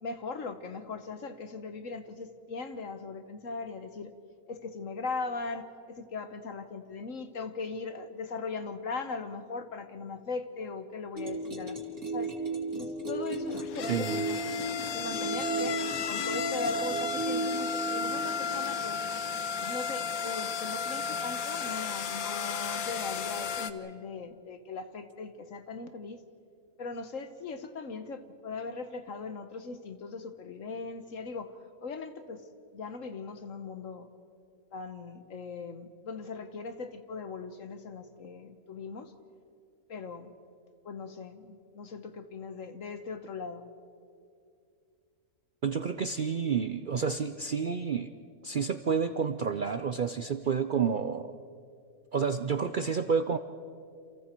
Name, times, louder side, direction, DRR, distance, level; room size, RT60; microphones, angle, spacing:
voice 1, 0.0-4.1 4.5-11.8 12.1-12.4 12.7-15.8 16.1-19.0 19.6-26.2 26.8-31.5 31.8-32.4 32.7-34.1 34.7-39.1 39.9-40.3 40.8-43.7, left 4 dB, 65° left, 9 dB, 1.6 m, -39 dB
sound 1, 11.2-18.4, right 2 dB, 80° right, 3.3 m, -35 dB
sound 2, 13.4-23.7, left 5 dB, 80° left, 1.3 m, -33 dB
voice 2, 13.9-14.2 45.6-48.1 48.4-51.3 52.1-53.4, right 6 dB, 50° right, 9 dB, 0.6 m, -29 dB
29.0 x 27.5 x 4.5 m, 2.4 s
omnidirectional pair, 1.5 m